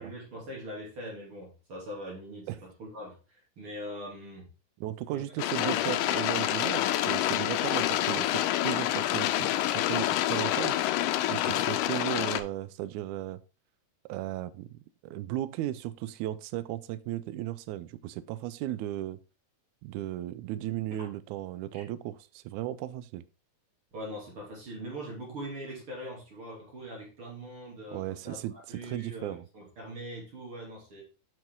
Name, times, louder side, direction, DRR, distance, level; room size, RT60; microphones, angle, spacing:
voice 1, 0.0-4.5 5.1-6.2 8.0-8.1 11.3-11.7 21.7-21.8 23.9-31.0, equal, 40° right, 3.2 m, -42 dB
voice 2, 4.8-10.8 11.3-13.4 14.1-14.7 15.0-19.2 19.8-23.2 27.9-28.5 28.8-29.5, right 13 dB, 80° right, 1.9 m, -36 dB
sound 1, 5.4-12.4, left 13 dB, 85° left, 2.2 m, -27 dB
9.0 x 5.6 x 3.6 m
omnidirectional pair, 3.8 m